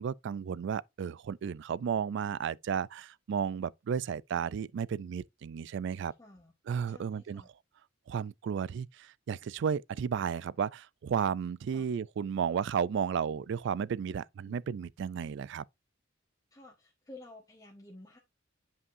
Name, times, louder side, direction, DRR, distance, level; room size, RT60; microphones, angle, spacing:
voice 1, 0.0-6.1 6.7-7.4 8.1-15.6, right 7 dB, 60° right, 0.3 m, -33 dB
voice 2, 6.2-6.5 6.9-7.5 11.7-11.9 14.4-14.6 16.5-18.2, left 2 dB, 15° left, 1.2 m, -52 dB
9.7 x 5.5 x 2.6 m
head